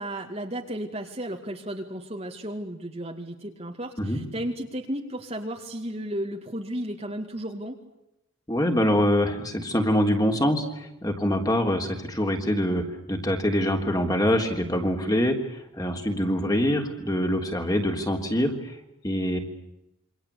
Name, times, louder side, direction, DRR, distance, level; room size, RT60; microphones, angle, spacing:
voice 1, 0.0-7.8 15.0-15.3 19.3-19.4, right 1 dB, 30° right, 2 dB, 2.3 m, -34 dB
voice 2, 8.5-15.4 15.8-18.5 19.0-19.4, equal, 20° left, 4 dB, 3.5 m, -24 dB
28.0 x 25.0 x 8.4 m, 0.85 s
head